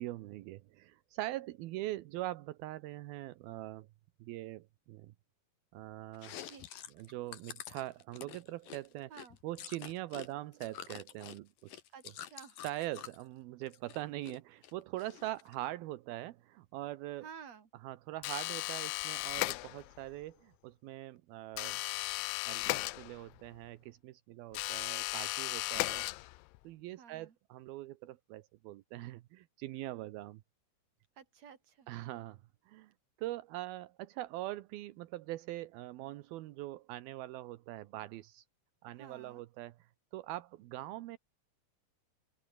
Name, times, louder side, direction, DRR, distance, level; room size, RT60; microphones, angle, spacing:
voice 1, 0.0-3.9 4.2-5.1 5.7-6.4 6.9-9.1 9.4-11.8 12.6-17.3 17.8-21.8 22.5-26.1 26.6-30.4 31.9-32.4 32.7-32.9 33.2-38.4 38.8-41.2, right 16 dB, 80° right, 2.2 m, -42 dB
Chewing mastication, 6.1-10.3 10.5-13.2 13.6-14.4 14.6-15.5, left 11 dB, 55° left, 2.9 m, -48 dB
voice 2, 11.9-12.6 17.2-17.7 27.0-27.4 31.2-31.9 38.9-39.4, right 7 dB, 40° right, 3.6 m, -52 dB
sound 1, 18.2-20.1 21.6-23.5 24.5-26.6, left 23 dB, 85° left, 2.9 m, -36 dB
open air
omnidirectional pair, 5.4 m